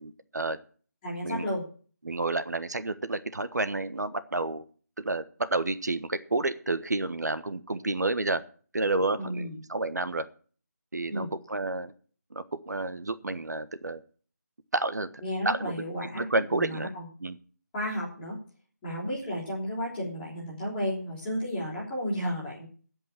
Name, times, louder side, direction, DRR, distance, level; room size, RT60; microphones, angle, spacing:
voice 1, 0.0-0.6 1.2-1.5 2.0-4.6 5.0-8.4 8.7-10.2 10.9-11.9 12.3-14.0 14.7-15.1 15.4-15.7 16.1-16.9 17.2-17.4, right 2 dB, 70° right, 12 dB, 1.3 m, -30 dB
voice 2, 1.0-1.6 9.2-9.6 11.1-11.3 15.2-17.1 17.7-18.4 18.8-22.7, equal, 5° left, -9 dB, 3.6 m, -33 dB
16.0 x 5.5 x 7.3 m, 0.42 s
figure-of-eight pair, 175°, 9 cm